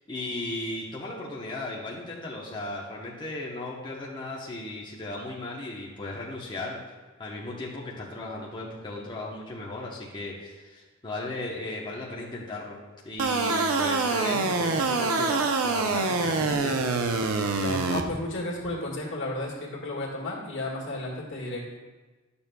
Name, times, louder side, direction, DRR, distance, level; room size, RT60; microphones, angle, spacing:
voice 1, 0.1-12.8 13.0-16.8, left 2 dB, 20° left, -5 dB, 0.9 m, -36 dB
sound 1, 13.2-18.0, right 3 dB, 85° right, 0.6 m, -25 dB
voice 2, 17.6-21.8, left 2 dB, 60° left, -2 dB, 1.7 m, -33 dB
11.0 x 7.0 x 2.2 m, 1.3 s
head